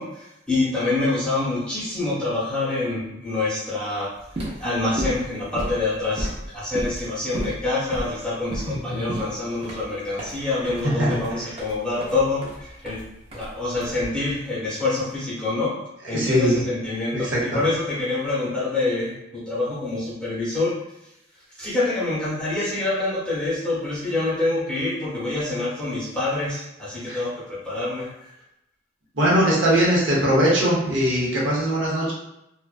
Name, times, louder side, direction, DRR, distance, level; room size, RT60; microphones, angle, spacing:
voice 1, 0.0-4.1 4.6-13.0 13.3-15.7 16.1-20.8 21.6-28.1, left 2 dB, 5° left, -9 dB, 0.8 m, -26 dB
sound 1, 4.2-14.4, right 1 dB, 30° right, 0.5 m, -34 dB
voice 2, 8.6-9.2 10.8-11.2 16.0-16.6 17.1-17.4 27.1-27.2 29.1-32.1, equal, 75° right, -6 dB, 0.8 m, -21 dB
2.4 x 2.1 x 2.4 m, 0.87 s
head